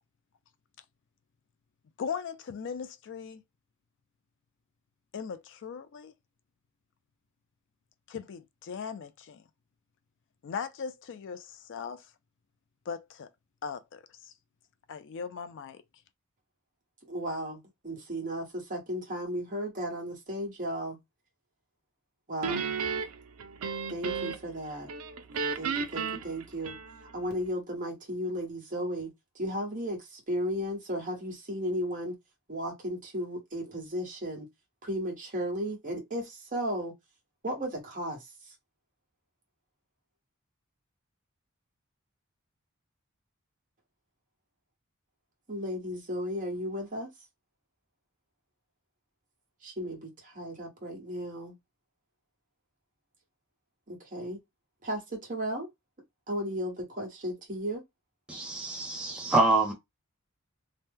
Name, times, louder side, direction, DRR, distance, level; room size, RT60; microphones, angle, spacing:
voice 1, 2.0-3.4 5.1-6.1 8.1-9.4 10.4-12.0 12.9-13.3 13.6-14.0 14.9-15.8, left 6 dB, 60° left, 0.4 m, -38 dB
voice 2, 17.0-21.0 22.3-22.7 23.9-24.9 25.6-26.8 27.1-29.1 29.3-32.1 32.5-34.5 34.8-36.9 37.4-38.5 45.5-47.1 49.6-51.5 53.9-54.4 54.8-55.7 56.3-57.8, equal, 40° right, 1.2 m, -35 dB
Guitar, 22.4-24.6 24.9-27.2, right 5 dB, 75° right, 0.4 m, -33 dB
voice 3, 58.3-59.7, right 2 dB, 5° right, 0.6 m, -26 dB
2.8 x 2.1 x 3.5 m
head